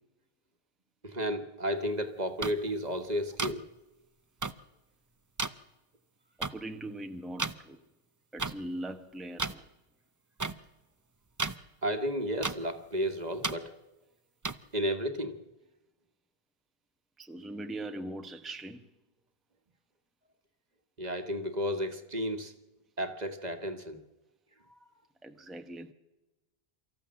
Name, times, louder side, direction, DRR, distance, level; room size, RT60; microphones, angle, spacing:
voice 1, 1.0-3.7 11.8-13.7 14.7-15.4 21.0-22.5 23.0-24.0, equal, 40° right, 7 dB, 1.6 m, -32 dB
sound 1, 2.4-2.5 3.4-3.5 4.4-4.5 5.4-5.5 6.4-6.5 7.4-7.5 8.4-8.5 9.4-9.5 10.4-10.5 11.4-11.6 12.4-12.5 13.4-13.5 14.4-14.5, right 3 dB, 20° right, 0.5 m, -31 dB
voice 2, 6.4-7.8 8.3-9.6 17.2-18.9 25.2-25.9, right 1 dB, ahead, 7 dB, 0.9 m, -41 dB
24.5 x 14.0 x 7.5 m, 1.0 s
omnidirectional pair, 1.0 m